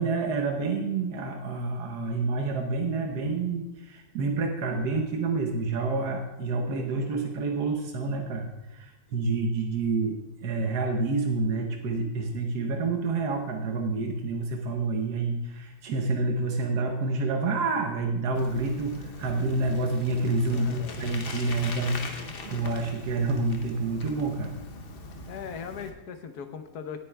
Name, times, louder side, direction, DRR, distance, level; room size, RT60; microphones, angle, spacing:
voice 1, 0.0-24.6, right 3 dB, 90° right, 2 dB, 1.5 m, -28 dB
Bicycle, 18.3-25.9, left 3 dB, 45° left, 0.9 m, -41 dB
voice 2, 20.5-21.0 25.3-27.0, left 7 dB, 75° left, 7 dB, 1.4 m, -39 dB
19.0 x 8.9 x 2.3 m, 1.0 s
omnidirectional pair, 1.7 m